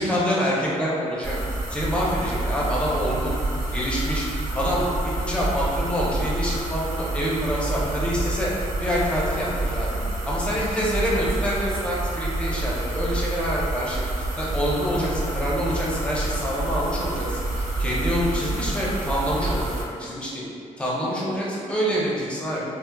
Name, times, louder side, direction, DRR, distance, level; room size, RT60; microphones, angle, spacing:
voice 1, 0.0-1.4 1.7-3.3 3.7-4.3 4.5-4.9 5.2-8.5 8.8-9.9 10.3-17.4 17.8-19.7 20.0-20.4 20.8-22.6, equal, 10° left, -6 dB, 0.7 m, -26 dB
sound 1, 1.2-19.8, right 2 dB, 65° right, 1.0 m, -28 dB
4.2 x 2.1 x 2.2 m, 2.3 s
cardioid pair, 105°, 13 cm